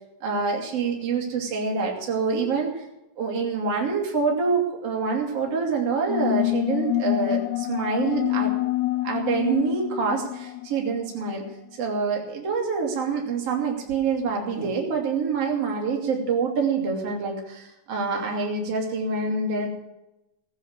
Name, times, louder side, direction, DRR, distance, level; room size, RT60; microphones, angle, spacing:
voice 1, 0.2-2.8 3.2-8.5 9.0-11.5 11.8-19.7, right 5 dB, 45° right, 0 dB, 3.6 m, -26 dB
sound 1, 6.1-11.3, left 19 dB, 70° left, 1.8 m, -27 dB
18.5 x 8.3 x 7.3 m, 0.92 s
omnidirectional pair, 4.2 m